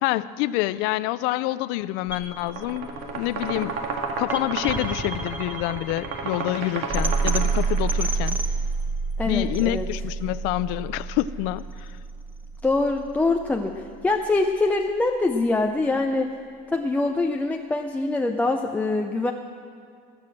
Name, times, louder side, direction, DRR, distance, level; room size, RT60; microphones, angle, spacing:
voice 1, 0.0-3.8 4.2-8.4 9.2-11.9, left 16 dB, 80° left, 16 dB, 0.4 m, -27 dB
sound 1, 2.1-14.1, right 4 dB, 10° right, 1.0 m, -29 dB
sound 2, 2.4-8.1, right 4 dB, 65° right, 1.9 m, -32 dB
voice 2, 9.2-9.9 12.6-16.3 16.7-19.3, left 2 dB, 10° left, 3 dB, 0.5 m, -24 dB
19.5 x 7.8 x 7.6 m, 2.3 s
cardioid pair, 160°, 18 cm